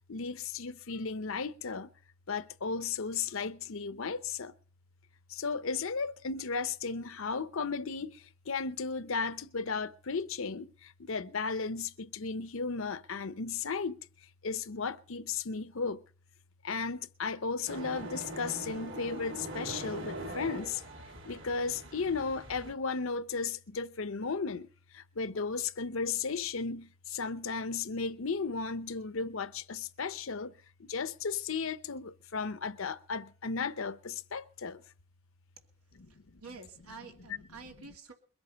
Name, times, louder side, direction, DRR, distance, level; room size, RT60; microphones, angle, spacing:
voice 1, 0.1-1.9 2.3-4.5 5.3-14.0 14.4-16.0 16.6-20.8 21.3-24.7 24.9-30.5 30.8-34.8, left 4 dB, 65° left, 0.7 m, -35 dB
sound 1, 17.7-22.7, right 1 dB, 60° right, 2.8 m, -42 dB
voice 2, 36.1-38.1, right 4 dB, 90° right, 2.9 m, -49 dB
22.0 x 8.1 x 5.8 m
head